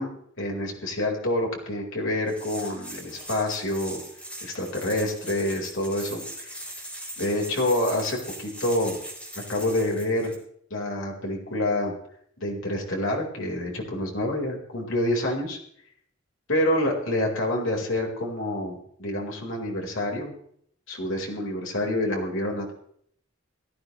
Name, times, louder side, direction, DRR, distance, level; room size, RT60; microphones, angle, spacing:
voice 1, 0.0-4.0 4.4-6.6 7.2-9.0 9.5-10.3 10.7-11.9 12.4-15.6 16.5-20.3 20.9-22.7, left 1 dB, 75° left, 0 dB, 4.2 m, -27 dB
sound 1, 2.3-10.4, right 1 dB, 5° left, 3.8 m, -40 dB
18.0 x 14.0 x 3.1 m, 0.65 s
head